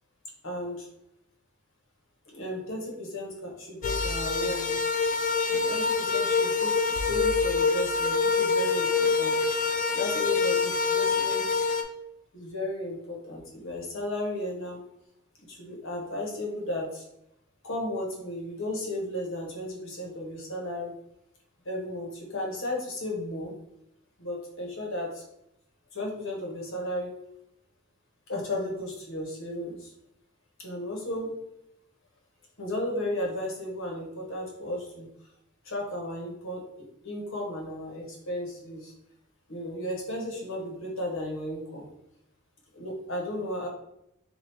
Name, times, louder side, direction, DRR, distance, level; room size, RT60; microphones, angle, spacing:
voice 1, 0.4-0.9 2.3-4.9 5.5-9.6 9.9-11.7 12.3-14.8 15.5-17.0 17.6-20.9 21.6-23.5 24.2-25.2 25.9-27.1 28.3-29.9 30.6-31.3 32.6-35.1 35.6-36.6 37.0-38.9 39.5-41.9 42.7-43.7, left 1 dB, 65° left, -2 dB, 1.2 m, -34 dB
sound 1, 3.8-11.8, left 4 dB, 40° left, 0.3 m, -25 dB
3.4 x 2.6 x 4.3 m, 0.82 s
head